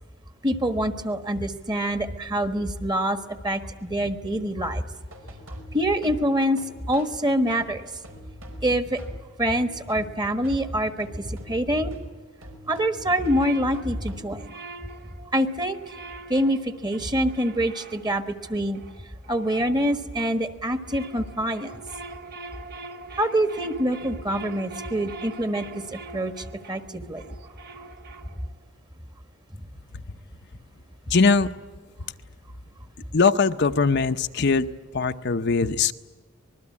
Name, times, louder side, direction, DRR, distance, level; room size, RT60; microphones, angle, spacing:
voice 1, 0.4-4.8 5.7-6.6 6.9-7.9 8.6-9.0 9.4-11.9 12.7-14.6 15.3-15.8 16.3-18.8 19.3-21.7 23.2-27.2, equal, 20° right, 9 dB, 1.4 m, -25 dB
sound 1, 4.9-10.7 11.0-14.6, equal, 90° right, 5.1 m, -48 dB
sound 2, 13.1-20.3 20.7-28.6, right 3 dB, 50° right, 0.9 m, -43 dB
voice 2, 31.1-31.5 33.1-34.7 34.9-35.9, left 4 dB, 55° left, 8 dB, 0.7 m, -21 dB
25.5 x 21.0 x 8.5 m, 1.4 s
head